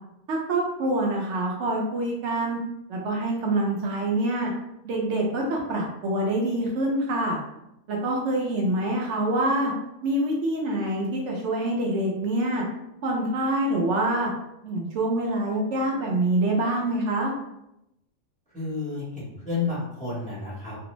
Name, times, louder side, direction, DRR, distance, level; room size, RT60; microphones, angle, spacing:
voice 1, 0.3-2.6 2.9-4.5 4.8-7.4 7.9-9.7 10.0-12.6 13.0-14.3 14.6-17.3, right 1 dB, 70° right, -1 dB, 0.9 m, -25 dB
voice 2, 18.5-20.8, left 4 dB, 5° left, -9 dB, 0.8 m, -31 dB
2.5 x 2.0 x 2.9 m, 0.85 s
omnidirectional pair, 1.3 m